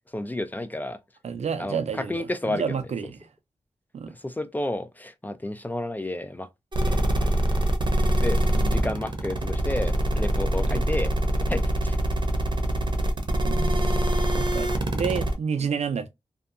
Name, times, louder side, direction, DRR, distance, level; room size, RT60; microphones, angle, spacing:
voice 1, 0.1-1.0 1.6-2.8 4.2-6.5 6.9-7.6 8.2-11.1 11.5-12.0, left 1 dB, 15° left, 0.4 m, -31 dB
voice 2, 1.2-3.2 3.9-4.1 10.7-10.9 13.4-16.1, right 6 dB, 70° right, 0.4 m, -30 dB
sound 1, 6.7-15.3, right 1 dB, 40° right, 0.7 m, -24 dB
2.6 x 2.2 x 2.4 m
cardioid pair, 65°, 12 cm